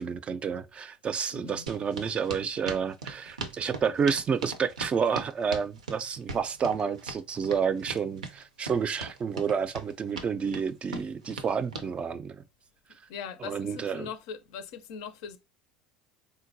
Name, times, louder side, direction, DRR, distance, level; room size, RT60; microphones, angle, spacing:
voice 1, 0.0-12.4 13.4-14.1, right 6 dB, 30° right, 0.3 m, -30 dB
voice 2, 1.3-1.7 13.1-15.4, left 7 dB, 70° left, 0.4 m, -40 dB
sound 1, 1.7-11.9, right 3 dB, 90° right, 0.5 m, -39 dB
3.8 x 2.2 x 2.6 m
hypercardioid pair, 75°, 4 cm